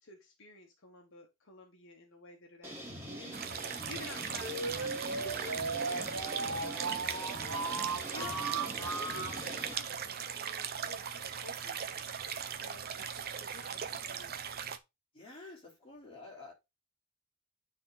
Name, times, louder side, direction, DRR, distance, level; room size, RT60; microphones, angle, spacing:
voice 1, 0.0-11.9 12.6-14.4, left 2 dB, 60° left, 1.4 m, -52 dB
sound 1, 2.6-9.7, equal, 10° right, 2.4 m, -44 dB
sound 2, 3.3-14.8, right 7 dB, 45° right, 0.7 m, -39 dB
sound 3, 4.4-9.4, right 4 dB, 85° right, 1.3 m, -37 dB
voice 2, 15.1-16.5, left 3 dB, 25° left, 3.5 m, -50 dB
9.5 x 3.9 x 3.9 m
head